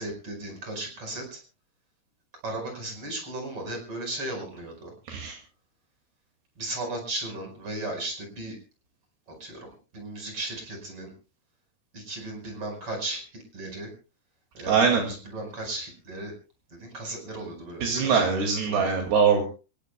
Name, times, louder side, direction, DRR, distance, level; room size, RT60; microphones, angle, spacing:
voice 1, 0.0-1.4 2.4-4.9 6.6-8.6 9.4-9.6 9.9-11.1 11.9-13.2 13.5-13.9 14.5-14.7 15.1-16.3 16.7-18.9, right 2 dB, 30° right, 3 dB, 5.7 m, -35 dB
voice 2, 5.1-5.4 14.7-15.0 17.8-19.4, right 6 dB, 70° right, 2 dB, 4.2 m, -22 dB
27.0 x 16.5 x 2.3 m, 0.34 s
omnidirectional pair, 4.8 m